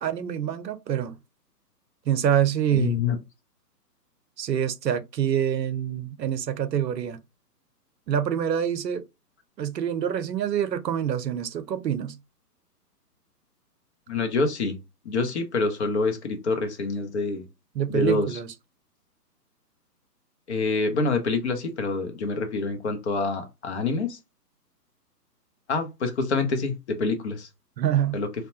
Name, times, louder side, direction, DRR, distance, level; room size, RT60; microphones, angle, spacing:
voice 1, 0.0-1.2 2.1-3.0 4.4-7.2 8.1-9.0 9.6-12.2 17.7-18.5 27.8-28.2, right 9 dB, 80° right, 0.6 m, -26 dB
voice 2, 2.7-3.2 14.1-14.8 15.0-17.5 17.9-18.4 20.5-24.2 25.7-27.5 28.1-28.3, left 3 dB, 45° left, 0.6 m, -26 dB
2.7 x 2.1 x 2.7 m
figure-of-eight pair, 135°, 49 cm